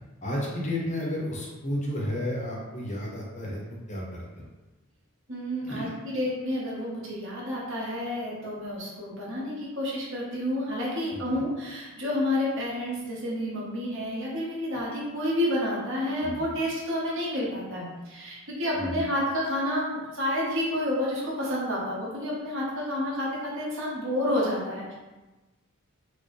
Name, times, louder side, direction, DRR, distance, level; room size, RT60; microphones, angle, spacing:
voice 1, 0.2-4.4 5.6-5.9 11.1-11.4 16.2-16.5 18.7-19.0, left 1 dB, 35° left, -3 dB, 0.7 m, -32 dB
voice 2, 5.3-24.9, left 1 dB, 60° right, -5 dB, 1.1 m, -30 dB
4.3 x 2.1 x 3.1 m, 1.1 s
head